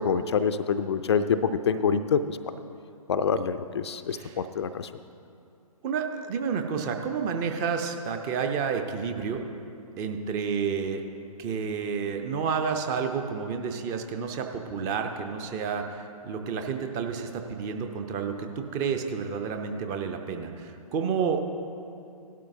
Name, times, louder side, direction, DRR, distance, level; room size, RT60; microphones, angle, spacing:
voice 1, 0.0-2.4 3.1-4.9, left 6 dB, 45° left, 11 dB, 0.5 m, -26 dB
voice 2, 4.1-4.4 5.8-9.4 10.0-11.0 11.4-21.5, right 6 dB, 20° right, 5 dB, 0.6 m, -30 dB
17.5 x 12.0 x 2.7 m, 2.6 s
figure-of-eight pair, 125°, 19 cm